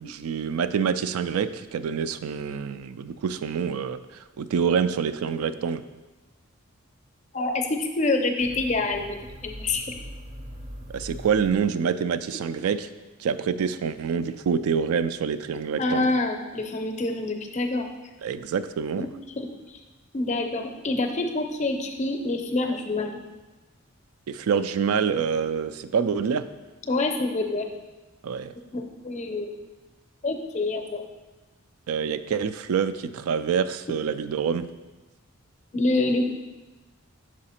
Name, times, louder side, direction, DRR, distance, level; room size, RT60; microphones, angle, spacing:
voice 1, 0.0-5.8 10.9-12.9 13.2-16.1 18.2-19.1 24.3-26.4 28.2-28.5 31.9-34.7, right 6 dB, 90° right, 12 dB, 0.3 m, -26 dB
voice 2, 7.3-9.2 9.4-9.8 15.8-17.9 19.0-19.8 20.1-23.1 26.9-27.7 28.7-29.5 30.2-31.0 35.7-36.3, left 2 dB, 35° left, 5 dB, 0.5 m, -26 dB
sound 1, 8.4-12.2, equal, 35° right, 0.5 m, -41 dB
6.1 x 4.8 x 4.3 m, 1.1 s
head